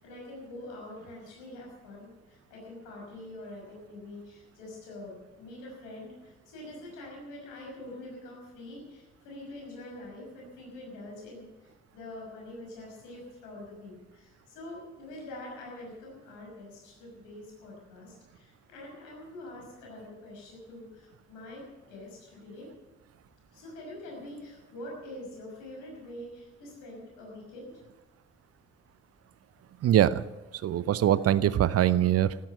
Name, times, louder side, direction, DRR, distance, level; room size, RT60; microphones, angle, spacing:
voice 1, 0.0-22.7 23.5-27.8, left 1 dB, 75° left, -1 dB, 5.9 m, -45 dB
voice 2, 29.8-30.3 30.6-32.4, right 11 dB, 50° right, 18 dB, 0.7 m, -23 dB
15.0 x 13.5 x 6.8 m, 1.0 s
figure-of-eight pair, 40°, 32 cm